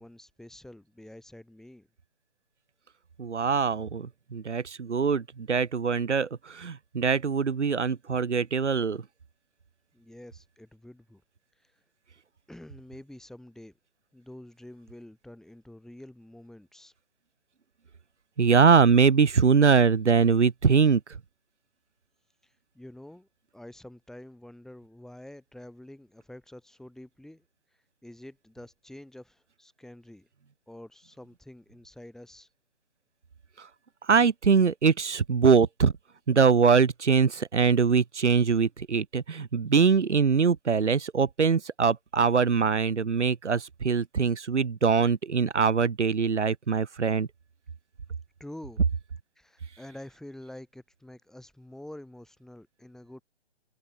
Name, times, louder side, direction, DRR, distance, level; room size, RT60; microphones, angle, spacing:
voice 1, 0.0-1.9 9.9-11.2 11.6-11.8 12.5-13.7 14.1-16.9 22.4-23.3 23.5-27.4 28.0-30.3 30.7-32.5 48.4-48.8 49.4-53.2, left 1 dB, ahead, 7.3 m, -47 dB
voice 2, 3.2-9.0 18.4-21.0 33.6-33.7 34.0-35.9 36.3-47.3, right 5 dB, 90° right, 1.0 m, -23 dB
figure-of-eight pair, 145°, 34 cm